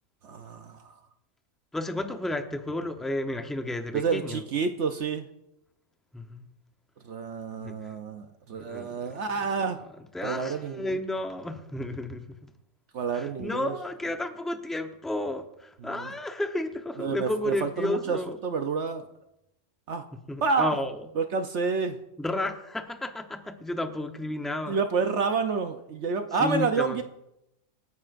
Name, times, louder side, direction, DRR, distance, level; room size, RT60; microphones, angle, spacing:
voice 1, 0.2-0.9 3.9-5.3 7.0-9.8 10.2-11.0 12.9-13.7 15.8-16.1 17.0-19.1 19.9-20.0 20.4-20.8 21.2-22.0 24.7-27.0, right 5 dB, 60° right, 7 dB, 0.9 m, -29 dB
voice 2, 1.7-4.4 6.1-6.5 7.6-7.7 8.5-9.0 10.1-12.2 13.1-18.4 20.3-21.0 22.2-24.8 26.4-27.0, left 1 dB, ahead, 6 dB, 0.5 m, -32 dB
26.5 x 9.5 x 2.5 m, 0.87 s
omnidirectional pair, 1.5 m